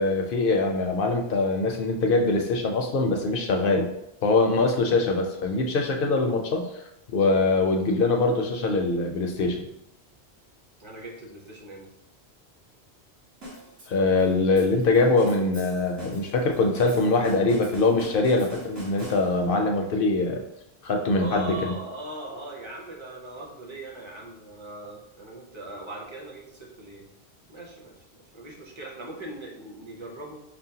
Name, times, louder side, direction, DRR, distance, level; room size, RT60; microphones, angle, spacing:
voice 1, 0.0-3.9 4.2-6.6 7.1-9.7 13.9-20.4 20.8-21.7, left 3 dB, 60° left, 3 dB, 0.7 m, -23 dB
voice 2, 10.8-11.9 21.1-27.0 27.5-30.4, right 1 dB, 30° right, -2 dB, 0.8 m, -40 dB
sound 1, 13.4-19.6, equal, 65° right, 1.8 m, -43 dB
6.0 x 2.1 x 2.7 m, 0.83 s
omnidirectional pair, 1.1 m